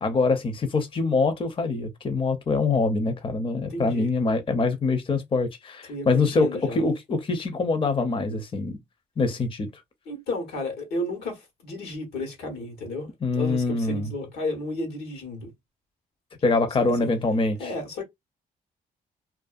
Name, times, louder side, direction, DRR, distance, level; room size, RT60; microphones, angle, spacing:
voice 1, 0.0-8.8 9.2-9.7 13.2-14.1 16.4-17.7, left 3 dB, 35° left, 0.6 m, -24 dB
voice 2, 3.7-4.1 5.9-6.8 10.1-15.5 16.8-17.1 17.6-18.0, left 1 dB, 90° left, 1.1 m, -33 dB
2.5 x 2.3 x 2.4 m
cardioid pair, 75°, 16 cm